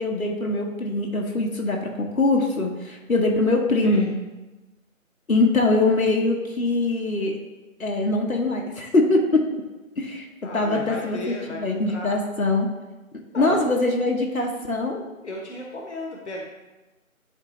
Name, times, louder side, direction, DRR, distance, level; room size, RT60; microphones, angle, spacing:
voice 1, 0.0-4.1 5.3-7.4 7.8-9.5 10.0-10.2 10.5-12.7 13.4-15.0, left 2 dB, 75° left, 0 dB, 1.2 m, -22 dB
voice 2, 10.4-12.2 13.3-13.7 15.2-16.4, left 1 dB, 55° left, 0 dB, 1.2 m, -34 dB
10.5 x 3.8 x 3.0 m, 1.1 s
figure-of-eight pair, 160°, 41 cm